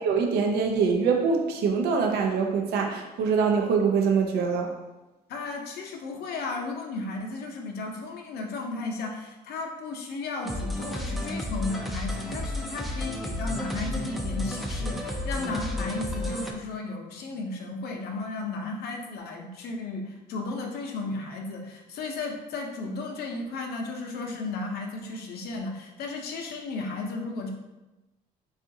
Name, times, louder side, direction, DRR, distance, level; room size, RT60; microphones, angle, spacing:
voice 1, 0.0-4.7, right 5 dB, 70° right, 3 dB, 0.5 m, -24 dB
voice 2, 5.3-27.5, left 3 dB, 70° left, 2 dB, 0.6 m, -34 dB
sound 1, 10.4-16.5, left 1 dB, ahead, 0.3 m, -32 dB
3.7 x 2.4 x 2.6 m, 1.0 s
cardioid pair, 110°, 17 cm